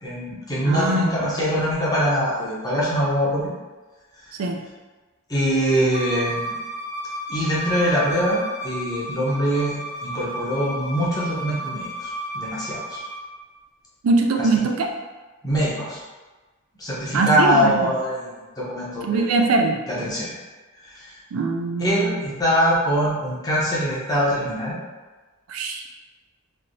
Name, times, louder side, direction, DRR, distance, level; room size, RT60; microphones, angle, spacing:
voice 1, 0.0-3.5 5.3-6.5 7.3-9.7 10.0-13.0 14.4-14.5 15.4-16.0 16.8-19.3 19.9-20.3 20.8-21.1 21.8-24.7, equal, 20° left, -7 dB, 0.8 m, -23 dB
voice 2, 0.6-1.1 4.4-4.6 14.0-14.9 17.1-17.9 19.0-19.8 21.3-22.2 25.5-25.8, right 3 dB, 80° right, 2 dB, 0.4 m, -22 dB
Bowed string instrument, 5.9-13.2, equal, 35° right, 0.5 m, -33 dB
3.2 x 2.8 x 2.6 m, 1.2 s
head